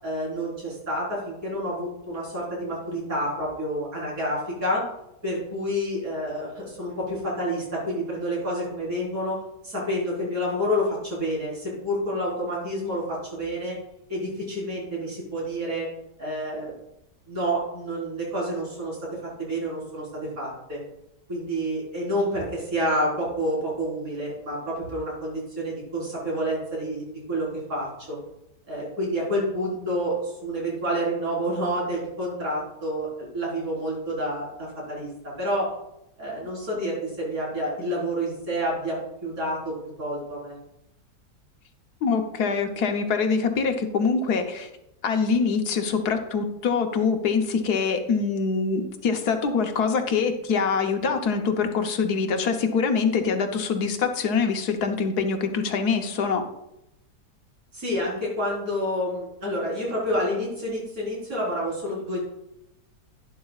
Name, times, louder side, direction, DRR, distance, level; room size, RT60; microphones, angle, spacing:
voice 1, 0.0-4.8 5.2-9.4 9.6-13.8 14.1-15.9 16.2-16.7 17.3-20.8 21.3-28.2 28.7-35.7 36.2-40.6 57.7-62.2, equal, 55° right, -5 dB, 4.8 m, -29 dB
voice 2, 42.0-44.7 45.0-56.4, left 5 dB, 70° left, 5 dB, 1.4 m, -24 dB
11.5 x 10.5 x 2.4 m, 0.86 s
omnidirectional pair, 1.8 m